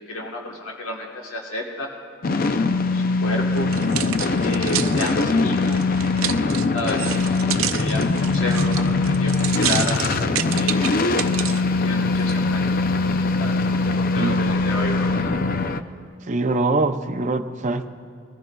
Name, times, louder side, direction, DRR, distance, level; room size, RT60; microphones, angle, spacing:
voice 1, 0.1-1.9 2.9-3.7 4.4-5.8 6.7-10.0 10.5-10.9 11.8-12.7 13.4-15.1, left 1 dB, 75° left, -1 dB, 1.3 m, -31 dB
sound 1, 2.2-15.8, left 3 dB, 45° left, 0.5 m, -22 dB
sound 2, 3.6-11.6 12.2-12.3, right 11 dB, 80° right, 0.5 m, -29 dB
voice 2, 16.3-17.9, right 2 dB, 35° right, 8 dB, 0.5 m, -23 dB
22.0 x 14.5 x 2.3 m, 2.4 s
head